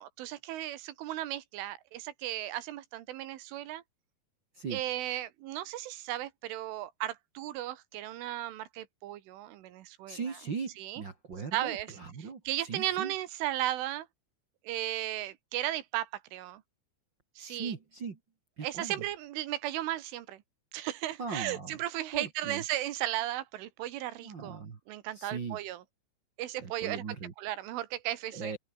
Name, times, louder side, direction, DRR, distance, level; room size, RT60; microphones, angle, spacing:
voice 1, 0.0-3.8 4.7-10.2 10.8-11.0 11.5-11.9 12.2-14.1 14.6-16.6 17.4-17.7 18.6-20.4 20.7-24.6 24.9-25.8 26.4-27.0 27.4-28.5, right 14 dB, 80° right, 3.9 m, -35 dB
voice 2, 10.1-13.1 17.4-18.2 18.6-19.0 21.2-21.8 22.1-22.6 24.2-24.8 25.1-25.6 26.6-27.3 28.3-28.6, right 5 dB, 60° right, 1.1 m, -39 dB
open air
omnidirectional pair, 5.6 m